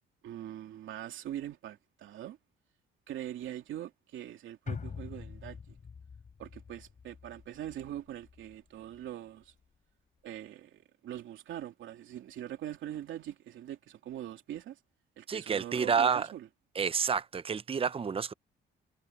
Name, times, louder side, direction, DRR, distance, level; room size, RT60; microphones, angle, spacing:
voice 1, 0.2-2.4 3.1-5.8 6.4-9.5 10.2-14.8 15.2-16.5, right 12 dB, 80° right, 3.0 m, -42 dB
sound 1, 4.7-9.1 9.4-9.5, left 5 dB, 40° left, 3.4 m, -45 dB
voice 2, 15.3-16.3 16.7-18.3, right 6 dB, 30° right, 0.7 m, -29 dB
cardioid pair, 90°, 20 cm